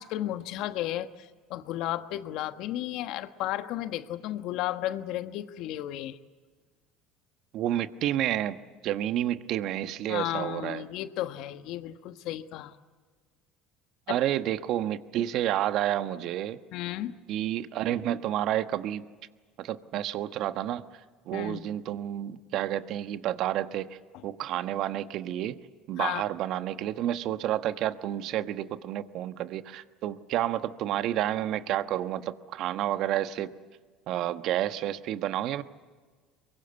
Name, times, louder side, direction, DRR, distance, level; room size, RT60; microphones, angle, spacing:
voice 1, 0.0-6.2 10.1-12.7 14.1-14.2 16.7-17.1 21.3-21.7 24.1-24.2 26.0-26.2, left 13 dB, 65° left, 10 dB, 1.3 m, -33 dB
voice 2, 7.5-8.6 8.8-10.8 14.1-16.6 17.3-19.0 19.6-20.8 21.3-24.0 24.2-25.6 25.9-33.5 34.1-35.6, right 12 dB, 60° right, 11 dB, 1.2 m, -30 dB
23.0 x 23.0 x 8.2 m, 1.5 s
hypercardioid pair, 75°, 0 cm